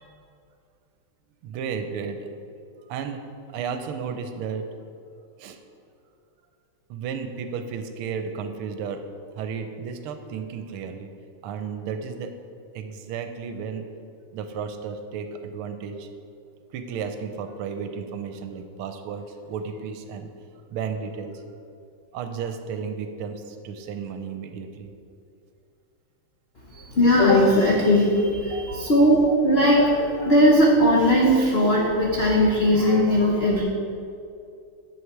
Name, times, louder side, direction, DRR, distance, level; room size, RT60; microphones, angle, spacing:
voice 1, 1.4-2.3 2.9-3.2 3.5-4.7 5.4-5.6 6.9-9.0 9.4-11.1 11.4-12.3 12.7-13.8 14.3-16.1 16.7-20.3 20.7-21.4 22.1-24.9 28.5-28.9, right 6 dB, 80° right, 7 dB, 1.5 m, -33 dB
voice 2, 26.7-33.6, equal, 65° left, -3 dB, 0.6 m, -19 dB
7.7 x 6.5 x 4.6 m, 2.5 s
omnidirectional pair, 2.4 m